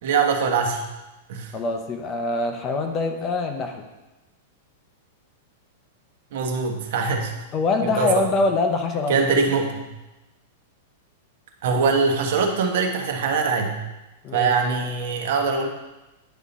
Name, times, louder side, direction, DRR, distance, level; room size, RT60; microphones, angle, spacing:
voice 1, 0.0-0.8 1.3-1.6 6.3-7.3 7.8-8.2 9.1-9.8 11.6-13.8 14.3-15.7, right 5 dB, 60° right, 3 dB, 1.1 m, -22 dB
voice 2, 1.5-3.9 7.5-9.1 14.2-14.5, left 3 dB, 25° left, 5 dB, 0.7 m, -24 dB
10.0 x 3.7 x 4.1 m, 1.0 s
supercardioid pair, 160°, 0 cm